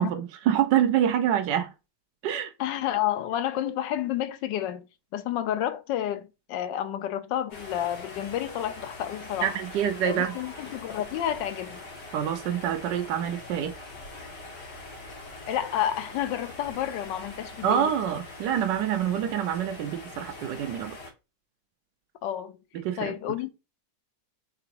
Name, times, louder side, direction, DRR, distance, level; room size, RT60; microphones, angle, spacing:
voice 1, 0.0-1.7 2.2-2.5 9.4-10.4 12.1-13.7 17.6-21.0 22.7-23.4, right 10 dB, 85° right, 1.2 m, -26 dB
voice 2, 2.6-4.9 5.1-9.6 10.0-11.8 15.5-17.9 22.2-22.6 23.0-23.5, left 11 dB, 85° left, 1.3 m, -30 dB
sound 1, 7.5-21.1, left 2 dB, 65° left, 2.8 m, -43 dB
5.0 x 3.4 x 2.8 m
omnidirectional pair, 1.9 m